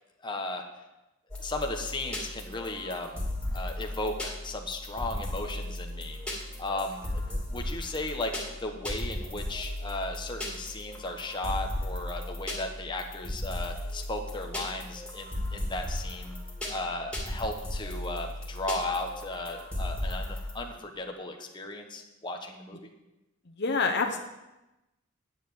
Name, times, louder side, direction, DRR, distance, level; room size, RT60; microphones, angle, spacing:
voice 1, 0.2-0.6 1.4-3.2 3.5-6.2 6.6-16.3 16.7-22.8, left 2 dB, 25° left, 2 dB, 1.2 m, -35 dB
sound 1, 1.3-20.5, left 1 dB, 5° left, 2.6 m, -36 dB
voice 2, 23.5-24.2, left 4 dB, 55° left, 4 dB, 1.0 m, -27 dB
10.0 x 7.1 x 8.4 m, 0.99 s
head